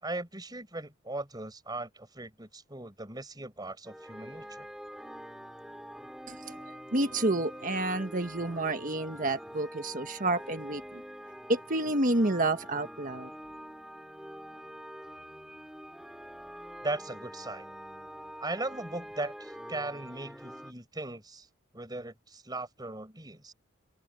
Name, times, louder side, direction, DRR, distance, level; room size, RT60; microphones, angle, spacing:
voice 1, 0.0-4.7 16.8-17.7 18.4-21.5 21.7-23.5, right 2 dB, 20° right, 5.6 m, -38 dB
sound 1, 3.8-20.7, equal, 5° right, 3.7 m, -45 dB
voice 2, 6.3-6.6 6.9-11.0 11.5-13.3, right 2 dB, 40° right, 1.6 m, -29 dB
head